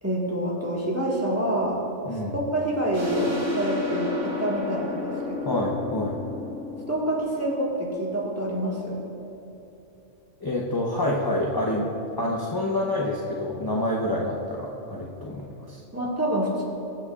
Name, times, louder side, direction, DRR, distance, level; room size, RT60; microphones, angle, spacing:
voice 1, 0.0-1.8 2.3-5.6 6.9-9.0 15.9-16.6, right 1 dB, 10° right, -4 dB, 1.6 m, -27 dB
sound 1, 2.9-8.2, left 4 dB, 70° right, 2.6 m, -33 dB
voice 2, 5.4-6.2 10.4-11.9 12.2-15.8, left 1 dB, 20° left, -3 dB, 0.7 m, -27 dB
22.0 x 7.8 x 2.4 m, 2.9 s
omnidirectional pair, 1.3 m